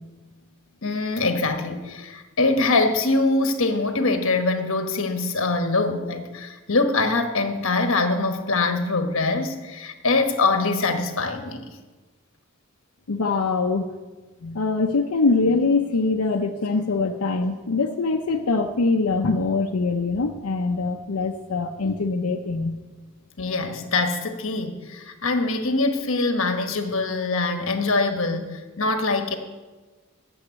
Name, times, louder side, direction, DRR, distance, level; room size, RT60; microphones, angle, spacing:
voice 1, 0.8-11.8 23.4-29.4, left 3 dB, 65° left, 6 dB, 1.3 m, -23 dB
voice 2, 13.1-13.9 14.4-22.8, left 3 dB, 90° left, 3 dB, 0.7 m, -23 dB
9.8 x 7.3 x 8.4 m, 1.3 s
head